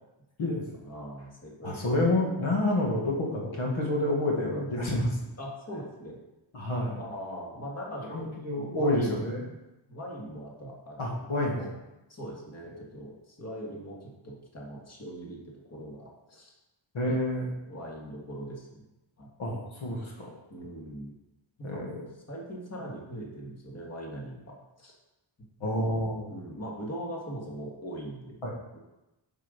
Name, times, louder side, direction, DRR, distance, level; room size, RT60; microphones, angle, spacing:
voice 1, 0.8-1.8 4.4-4.7 5.4-6.2 7.0-9.3 9.9-11.3 12.1-16.5 17.0-17.2 17.7-18.8 19.2-19.3 20.5-21.1 21.6-21.9 22.3-24.9 25.6-26.0 26.3-28.8, equal, 35° left, -2 dB, 1.9 m, -41 dB
voice 2, 1.6-5.1 6.5-7.0 8.1-9.5 11.0-11.7 16.9-17.5 19.4-20.3 21.6-22.0 25.6-26.3 28.4-28.5, left 1 dB, 80° left, -1 dB, 2.0 m, -28 dB
7.9 x 6.7 x 5.3 m, 1.0 s
wide cardioid pair, 130°, 47 cm